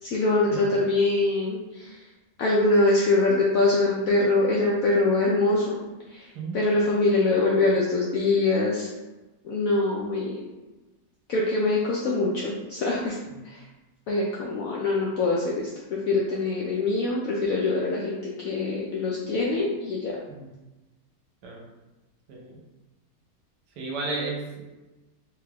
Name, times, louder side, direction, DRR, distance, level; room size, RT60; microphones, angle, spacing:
voice 1, 0.0-2.0 2.4-5.8 6.1-6.2 6.5-8.9 9.4-10.3 11.3-13.2 13.4-13.6 14.1-20.2, left 2 dB, 75° left, -4 dB, 0.7 m, -24 dB
voice 2, 23.8-24.6, right 3 dB, 70° right, -1 dB, 1.2 m, -33 dB
3.4 x 2.3 x 3.3 m, 1.1 s
omnidirectional pair, 1.9 m